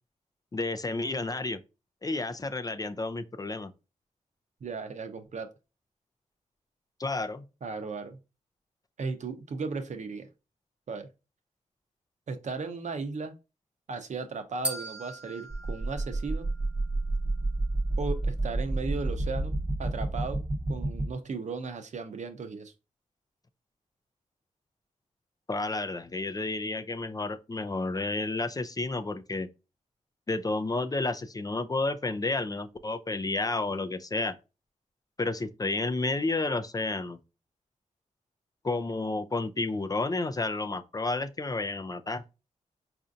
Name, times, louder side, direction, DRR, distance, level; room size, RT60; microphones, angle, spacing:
voice 1, 0.5-1.6 2.0-3.7 7.0-7.4 25.5-29.5 30.3-34.3 35.2-37.2 38.6-42.2, left 3 dB, 30° left, 0.4 m, -31 dB
voice 2, 4.6-5.5 7.6-8.2 9.0-10.3 10.9-11.1 12.3-13.3 13.9-16.5 18.0-22.7, right 4 dB, 65° right, 0.7 m, -36 dB
sound 1, 14.6-16.9, equal, 5° right, 0.9 m, -39 dB
sound 2, 15.5-21.1, right 2 dB, 30° right, 0.8 m, -30 dB
4.3 x 2.6 x 2.5 m
cardioid pair, 70°, 13 cm